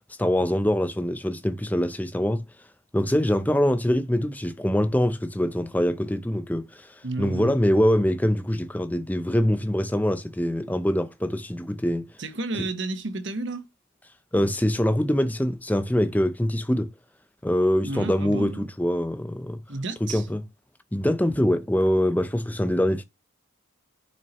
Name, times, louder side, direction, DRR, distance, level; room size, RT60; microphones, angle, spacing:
voice 1, 0.2-2.4 2.9-12.1 12.6-12.7 14.3-16.9 17.4-19.6 20.0-20.4 20.9-23.0, equal, 10° left, 0.6 m, -24 dB
voice 2, 7.0-7.5 12.2-13.7 17.8-18.7 19.7-20.2, right 2 dB, 60° right, 1.1 m, -31 dB
10.5 x 5.8 x 3.1 m
head